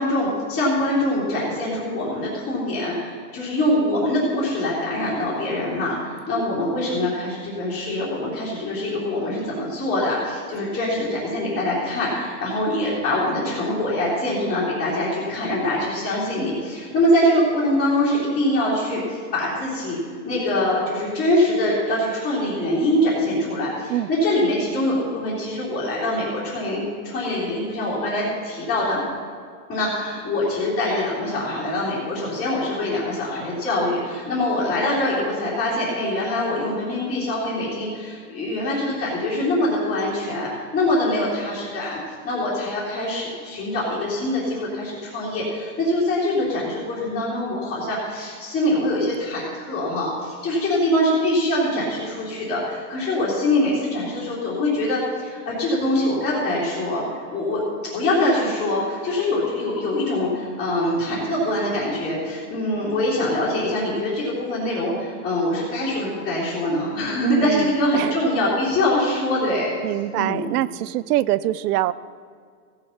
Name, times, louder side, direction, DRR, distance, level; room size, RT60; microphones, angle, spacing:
voice 1, 0.0-20.0 20.2-29.0 29.7-57.0 57.3-57.6 57.9-69.7 70.1-70.4, left 1 dB, 20° left, -9 dB, 2.8 m, -24 dB
voice 2, 67.2-68.2 69.8-71.9, right 14 dB, 80° right, 18 dB, 0.6 m, -24 dB
16.0 x 6.8 x 5.7 m, 2.1 s
supercardioid pair, 160°, 46 cm